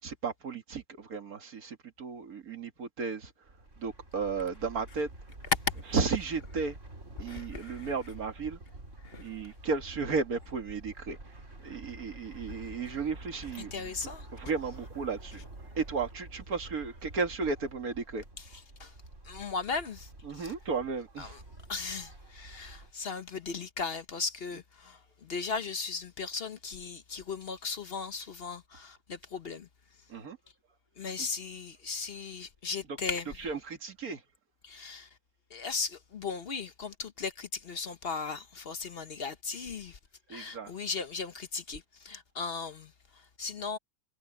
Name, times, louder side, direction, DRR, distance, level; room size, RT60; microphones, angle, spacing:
voice 1, 0.0-5.1 5.9-6.8 7.2-8.6 9.2-18.2 20.2-21.4 24.5-24.6 30.1-30.4 31.2-31.3 32.8-34.2 40.3-40.7, right 4 dB, 85° right, 2.4 m, -34 dB
sound 1, 3.4-22.9, right 2 dB, 55° right, 4.3 m, -48 dB
voice 2, 7.3-7.7 9.0-9.2 13.7-14.2 18.8-18.9 19.3-20.1 21.7-29.7 31.0-33.2 34.6-35.1 35.5-40.0 40.3-42.9 43.4-43.8, left 5 dB, 45° left, 1.0 m, -37 dB
omnidirectional pair, 1.5 m